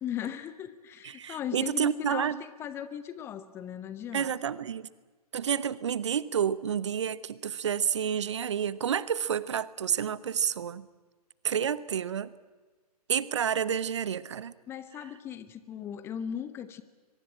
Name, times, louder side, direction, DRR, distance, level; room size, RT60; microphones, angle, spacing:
voice 1, 0.0-4.3 14.7-16.8, left 9 dB, 10° left, 14 dB, 0.8 m, -38 dB
voice 2, 1.0-2.4 4.1-4.9 5.3-10.9 11.4-12.3 13.1-14.5, right 8 dB, 45° right, 18 dB, 0.9 m, -29 dB
23.0 x 23.0 x 8.8 m, 1.3 s
figure-of-eight pair, 125°, 20 cm